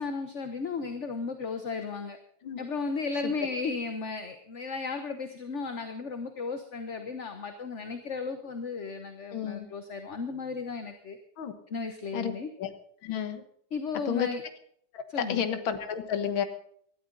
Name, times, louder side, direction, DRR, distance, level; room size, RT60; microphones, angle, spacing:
voice 1, 0.0-2.2 2.6-11.2 11.7-12.5 13.7-14.4 15.1-15.5, left 4 dB, 45° left, 7 dB, 1.2 m, -35 dB
voice 2, 9.3-9.7 11.4-11.5 12.1-12.3 12.6-12.7 13.0-13.4 14.1-14.3 14.9-16.4, left 8 dB, 85° left, 9 dB, 2.0 m, -31 dB
18.5 x 13.5 x 4.0 m, 0.64 s
omnidirectional pair, 2.1 m